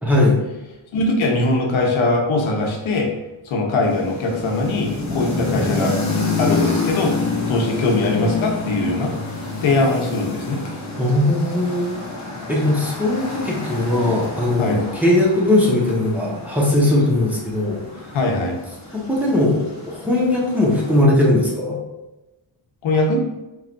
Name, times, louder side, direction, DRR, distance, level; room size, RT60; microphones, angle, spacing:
voice 1, 0.0-0.4 11.0-12.0 12.5-18.1 18.9-21.8, left 1 dB, 5° right, -5 dB, 1.2 m, -19 dB
voice 2, 0.9-3.1 3.4-6.0 6.4-7.1 7.5-9.1 9.6-10.6 14.6-14.8 18.1-18.6 22.8-23.2, left 2 dB, 75° left, 1 dB, 1.0 m, -21 dB
sound 1, 3.9-21.0, left 3 dB, 35° left, 1.1 m, -28 dB
4.8 x 3.2 x 2.6 m, 0.99 s
cardioid pair, 100°, 48 cm